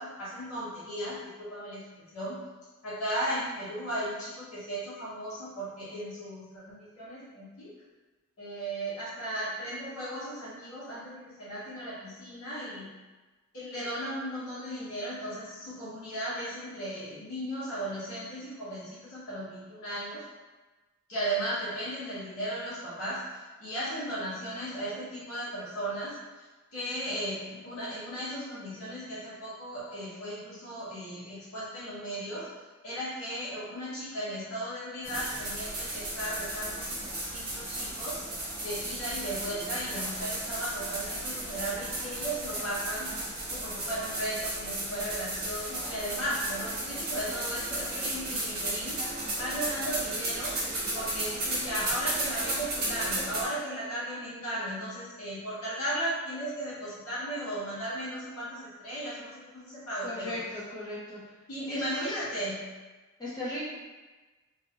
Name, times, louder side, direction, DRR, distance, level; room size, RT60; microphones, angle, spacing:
voice 1, 0.0-1.8 2.1-2.4 2.8-7.7 8.4-12.9 13.5-20.2 21.1-26.2 26.7-32.5 32.8-38.2 38.6-43.1 43.5-49.0 49.4-50.5 50.9-60.4 61.5-62.6, right 1 dB, 70° left, -10 dB, 1.0 m, -36 dB
sound 1, 35.0-53.4, right 1 dB, 45° right, 0.9 m, -34 dB
voice 2, 60.0-61.2 61.7-62.1 63.2-63.6, left 1 dB, 20° left, -9 dB, 0.6 m, -37 dB
2.8 x 2.4 x 2.8 m, 1.2 s
head